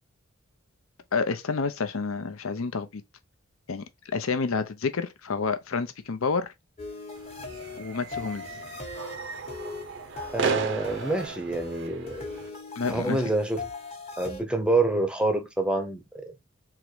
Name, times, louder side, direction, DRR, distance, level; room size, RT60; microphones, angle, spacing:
voice 1, 1.1-3.0 3.7-3.9 4.1-6.5 7.8-8.4 12.8-13.2, left 4 dB, 70° left, 0.6 m, -29 dB
sound 1, 6.8-14.4, left 3 dB, 30° left, 1.0 m, -40 dB
sound 2, 7.2-12.5, right 5 dB, 55° right, 0.6 m, -35 dB
voice 2, 10.3-12.2 12.9-13.7 14.2-16.5, right 2 dB, 5° right, 0.7 m, -27 dB
3.7 x 3.0 x 3.2 m
head